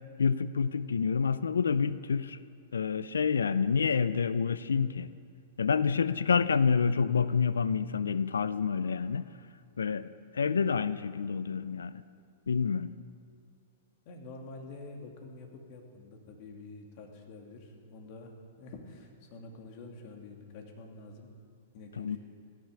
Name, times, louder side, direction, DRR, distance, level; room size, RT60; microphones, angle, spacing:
voice 1, 0.2-2.4 2.7-5.1 5.6-9.2 9.8-12.0 12.5-12.9 22.0-22.2, left 6 dB, 85° left, 16 dB, 0.4 m, -28 dB
voice 2, 14.1-18.3 18.6-21.3 21.7-22.2, left 3 dB, 50° left, 2 dB, 2.6 m, -47 dB
16.5 x 12.0 x 6.9 m, 2.5 s
hypercardioid pair, 115°, 0 cm